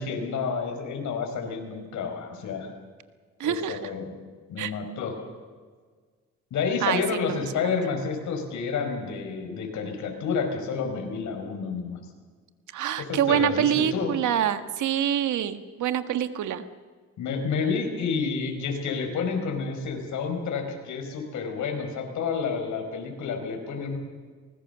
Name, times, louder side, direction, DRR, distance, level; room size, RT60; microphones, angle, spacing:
voice 1, 0.0-2.7 3.4-4.1 4.5-5.2 6.5-12.0 13.0-14.1 17.2-24.0, left 5 dB, 75° left, 3 dB, 5.0 m, -30 dB
voice 2, 3.4-3.9 4.6-4.7 6.8-7.0 7.3-7.7 12.7-16.6, right 10 dB, 75° right, 9 dB, 1.7 m, -26 dB
25.0 x 20.0 x 6.9 m, 1.6 s
cardioid pair, 90°, 30 cm